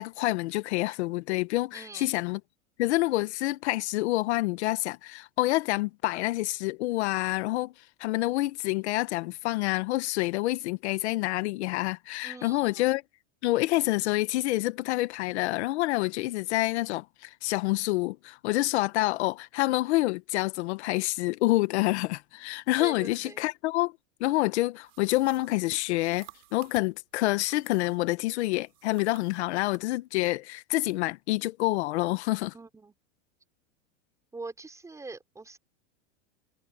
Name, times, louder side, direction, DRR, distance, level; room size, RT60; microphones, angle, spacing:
voice 1, 0.0-2.4 2.8-13.0 13.4-23.9 24.2-32.5, left 18 dB, 60° left, 1.2 m, -27 dB
voice 2, 1.7-2.1 12.2-12.9 22.8-23.5 32.5-33.0 34.3-35.6, right 3 dB, 10° right, 6.0 m, -43 dB
sound 1, 24.8-28.1 28.6-29.9, right 18 dB, 75° right, 3.8 m, -54 dB
supercardioid pair, 160°, 37 cm